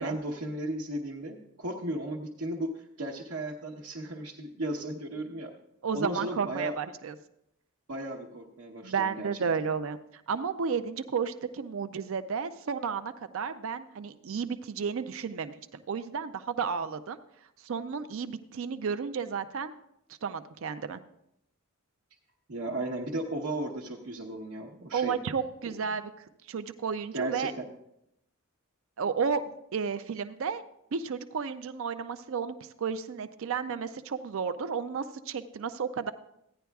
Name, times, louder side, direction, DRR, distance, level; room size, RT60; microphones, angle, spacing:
voice 1, 0.0-5.5 5.9-6.7 7.9-9.3 22.5-25.1 27.1-27.6, right 1 dB, 85° right, -2 dB, 1.0 m, -35 dB
voice 2, 5.8-7.1 8.8-10.0 10.3-17.2 17.6-19.7 20.2-21.0 24.9-26.1 26.5-27.5 29.0-29.4 29.7-30.6 30.9-36.1, right 6 dB, 65° right, 10 dB, 0.4 m, -32 dB
15.5 x 10.0 x 2.3 m, 0.79 s
head